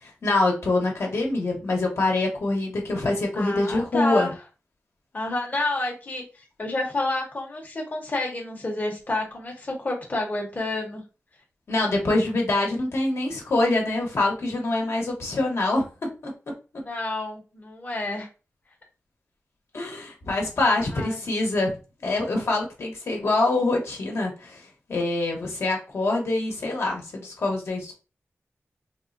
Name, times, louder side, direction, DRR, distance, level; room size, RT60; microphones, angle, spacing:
voice 1, 0.0-4.3 11.7-15.8 16.2-16.3 19.7-21.7 22.0-24.6 24.9-27.9, left 2 dB, 70° left, 0 dB, 0.9 m, -25 dB
voice 2, 3.3-4.3 5.1-11.0 16.8-18.3 20.9-21.2, left 2 dB, 35° left, -1 dB, 0.8 m, -29 dB
3.5 x 2.1 x 2.5 m, 0.32 s
wide cardioid pair, 120°, 5 cm